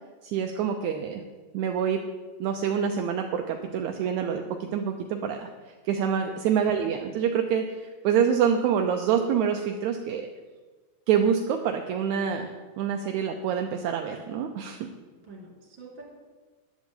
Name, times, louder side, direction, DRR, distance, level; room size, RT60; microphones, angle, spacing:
voice 1, 0.2-1.2 1.5-2.0 2.4-5.5 5.8-10.3 11.1-14.9, right 7 dB, 80° right, 5 dB, 1.7 m, -26 dB
voice 2, 15.2-16.0, right 2 dB, 35° right, -2 dB, 3.0 m, -46 dB
13.5 x 10.5 x 3.8 m, 1.3 s
omnidirectional pair, 4.0 m